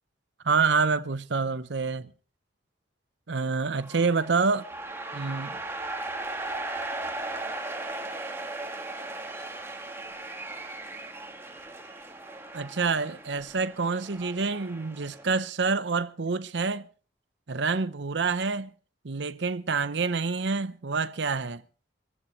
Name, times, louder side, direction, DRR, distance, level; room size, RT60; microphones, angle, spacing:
voice 1, 0.5-2.1 3.3-4.7 5.1-5.6 12.5-16.9 17.5-18.7 19.0-21.6, right 4 dB, 75° right, 0.7 m, -27 dB
sound 1, 3.7-15.2, right 2 dB, 15° right, 1.8 m, -37 dB
24.0 x 14.5 x 3.1 m
head